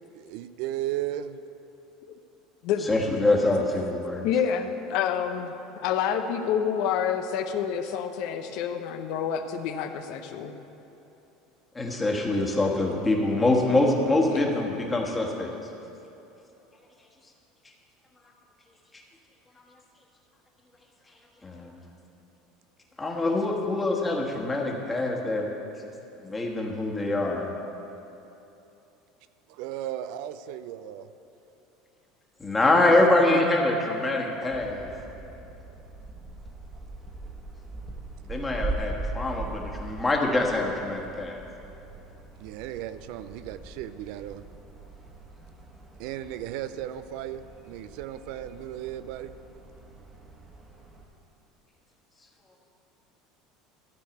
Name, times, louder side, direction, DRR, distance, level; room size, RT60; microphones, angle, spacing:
voice 1, 0.1-1.4 29.5-31.1 32.6-33.4 38.6-39.0 42.4-44.4 46.0-49.3, right 12 dB, 70° right, 13 dB, 0.4 m, -35 dB
voice 2, 2.8-4.2 11.7-15.5 21.4-21.8 23.0-25.5 26.2-27.5 32.4-34.9 38.3-41.4, left 2 dB, 15° left, 0 dB, 1.5 m, -24 dB
voice 3, 4.2-5.6 5.8-10.5 14.3-14.4, left 8 dB, 65° left, 7 dB, 0.6 m, -28 dB
sound 1, 34.5-51.0, right 2 dB, 20° right, 1.3 m, -41 dB
13.5 x 4.6 x 8.1 m, 2.9 s
supercardioid pair, 125°, 0 cm